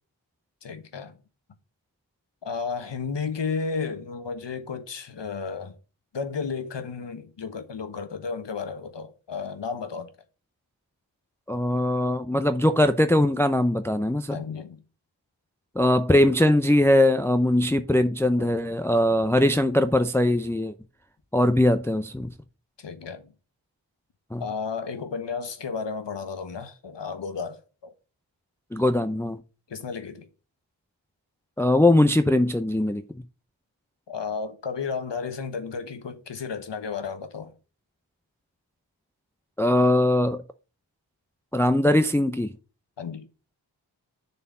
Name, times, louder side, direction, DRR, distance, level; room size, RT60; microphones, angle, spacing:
voice 1, 0.6-1.1 2.4-5.7 6.1-10.1 14.3-14.8 18.4-18.5 22.8-23.2 24.4-27.9 29.7-30.3 34.1-37.5 43.0-43.2, left 5 dB, 60° left, 1.3 m, -33 dB
voice 2, 11.5-14.4 15.8-20.7 21.3-22.3 24.3-24.4 28.7-29.4 31.6-33.0 39.6-40.4 41.5-42.5, left 1 dB, 5° left, 0.6 m, -21 dB
6.8 x 4.5 x 5.5 m
cardioid pair, 45°, 47 cm